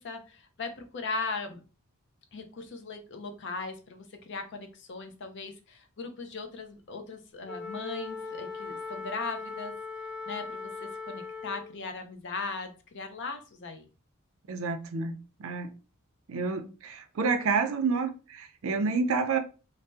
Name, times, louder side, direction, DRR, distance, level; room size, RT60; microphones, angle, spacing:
voice 1, 0.0-1.6 2.3-9.7 10.3-13.9, left 4 dB, 55° left, 0.6 m, -38 dB
Wind instrument woodwind instrument, 7.5-11.8, left 4 dB, 10° right, 0.7 m, -39 dB
voice 2, 14.5-15.7 16.3-19.4, right 4 dB, 65° right, 0.4 m, -29 dB
2.7 x 2.0 x 3.3 m
head